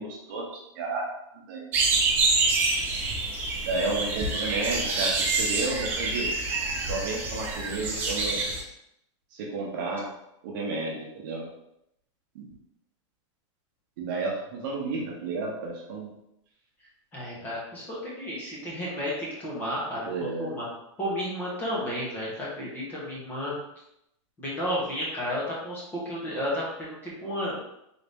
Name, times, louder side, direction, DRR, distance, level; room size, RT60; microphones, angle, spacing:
voice 1, 0.0-1.7 3.7-6.3 6.9-8.4 9.3-10.1 10.4-11.5 12.3-12.5 14.0-16.1 20.0-20.6, right 3 dB, 45° right, -1 dB, 0.8 m, -32 dB
sound 1, 1.7-8.6, right 3 dB, 15° right, 0.3 m, -27 dB
voice 2, 17.1-20.1 20.4-20.7 21.0-23.6 24.4-27.6, equal, 10° left, -6 dB, 0.9 m, -32 dB
4.0 x 2.8 x 3.4 m, 0.80 s
supercardioid pair, 170°, 16 cm